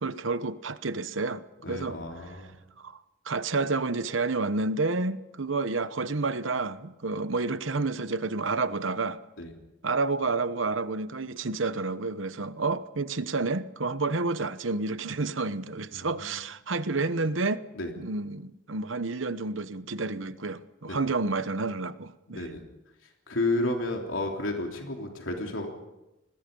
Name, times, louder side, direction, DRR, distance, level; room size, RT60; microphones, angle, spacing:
voice 1, 0.0-2.0 2.8-3.0 3.2-9.2 9.8-17.6 18.0-22.5, right 3 dB, 80° right, 1.0 m, -30 dB
voice 2, 1.6-2.6 9.4-9.5 15.9-16.4 17.7-17.9 20.9-21.0 22.3-22.6 23.3-25.7, left 2 dB, 80° left, 3.5 m, -31 dB
27.5 x 21.0 x 5.5 m
head